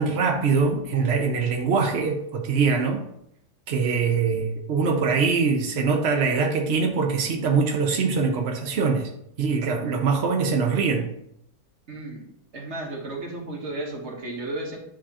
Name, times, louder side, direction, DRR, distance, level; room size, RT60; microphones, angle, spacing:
voice 1, 0.0-3.0 3.7-9.1 9.4-11.1, right 5 dB, 80° right, 2 dB, 0.5 m, -23 dB
voice 2, 11.9-12.3 12.5-14.8, right 2 dB, 40° right, 0 dB, 1.3 m, -33 dB
9.7 x 3.7 x 2.9 m, 0.75 s
omnidirectional pair, 2.2 m